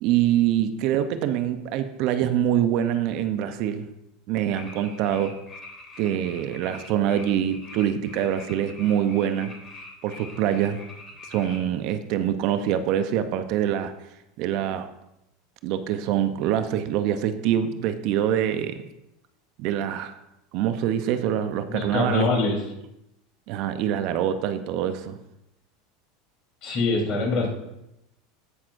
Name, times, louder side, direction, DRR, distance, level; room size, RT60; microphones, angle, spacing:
voice 1, 0.0-3.9 4.3-5.4 6.0-9.5 10.0-10.8 11.3-13.9 14.4-14.9 15.6-18.8 19.6-20.1 20.5-22.3 23.5-25.2, right 10 dB, 60° right, 10 dB, 0.6 m, -25 dB
sound 1, 4.5-11.6, left 2 dB, 20° left, 3.3 m, -44 dB
voice 2, 21.7-22.6 26.6-27.5, left 3 dB, 45° left, -2 dB, 3.5 m, -24 dB
15.0 x 6.0 x 2.6 m, 0.87 s
hypercardioid pair, 105°, 0 cm